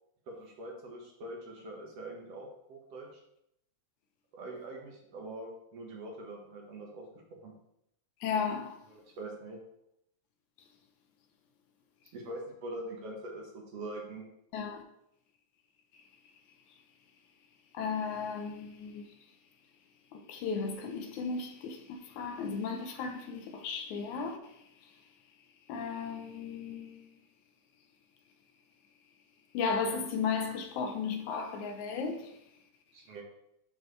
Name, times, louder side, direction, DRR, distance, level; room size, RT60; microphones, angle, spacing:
voice 1, 0.3-3.1 4.3-7.0 7.4-7.5 8.9-9.6 12.1-14.2 32.9-33.2, right 1 dB, 60° right, 2.3 m, -43 dB
voice 2, 8.2-8.8 14.5-14.8 17.7-19.1 20.1-24.5 25.7-27.1 29.5-32.3, left 5 dB, 85° left, 2.3 m, -35 dB
10.5 x 4.6 x 3.2 m
omnidirectional pair, 3.3 m